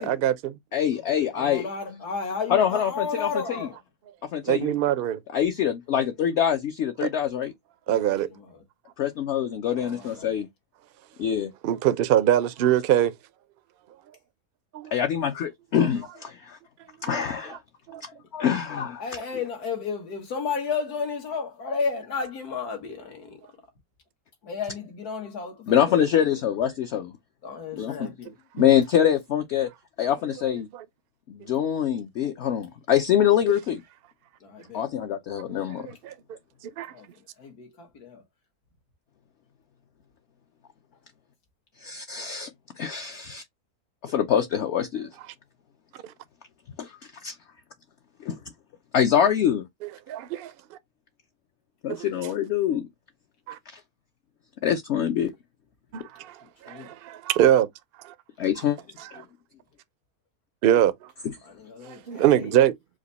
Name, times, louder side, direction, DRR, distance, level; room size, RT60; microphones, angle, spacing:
voice 1, 0.0-0.6 4.4-5.2 7.0-7.1 7.9-8.3 11.6-13.1 14.7-14.9 17.1-17.2 17.5-17.6 17.9-18.0 28.6-28.7 30.7-30.8 35.8-36.1 36.8-36.9 50.1-50.8 52.0-52.1 53.5-53.6 55.9-56.4 56.6-57.7 58.0-58.1 60.6-60.9 61.9-62.7, right 11 dB, 70° right, 0.5 m, -23 dB
voice 2, 0.7-2.0 2.5-3.7 4.3-4.7 5.3-7.5 9.0-10.5 11.2-11.5 14.9-16.6 17.0-17.6 18.0-19.2 25.7-27.1 27.7-28.1 28.5-29.7 30.0-30.7 31.3-33.8 34.7-35.9 41.8-42.5 42.8-43.4 44.0-45.1 46.8-47.4 48.2-48.4 48.9-49.6 51.8-52.9 53.7-53.8 54.6-55.3 58.4-58.8, left 9 dB, 65° left, 0.7 m, -25 dB
voice 3, 1.3-3.8 7.9-8.4 9.7-10.3 19.0-23.4 24.4-26.2 27.4-28.3 34.4-34.8 36.9-37.1 37.4-38.2 56.7-56.9 61.5-62.5, left 5 dB, 90° left, 1.9 m, -33 dB
5.0 x 2.2 x 3.9 m
omnidirectional pair, 1.6 m